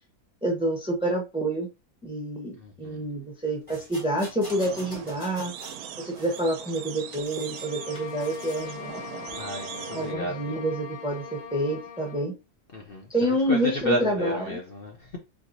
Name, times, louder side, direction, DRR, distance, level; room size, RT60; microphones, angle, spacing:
voice 1, 0.4-1.7 2.0-5.5 6.0-9.0 9.9-12.3 13.1-14.6, right 1 dB, 5° right, 0.7 m, -28 dB
voice 2, 2.6-3.0 9.4-10.5 12.7-15.2, left 1 dB, 50° left, 0.8 m, -32 dB
sound 1, 3.7-5.8 6.1-7.7 8.0-8.7 9.3-9.4, left 1 dB, 20° left, 1.8 m, -46 dB
sound 2, 4.5-10.1, right 9 dB, 80° right, 1.1 m, -41 dB
sound 3, 7.5-12.3, left 6 dB, 70° left, 0.3 m, -41 dB
4.6 x 3.9 x 2.6 m
omnidirectional pair, 1.6 m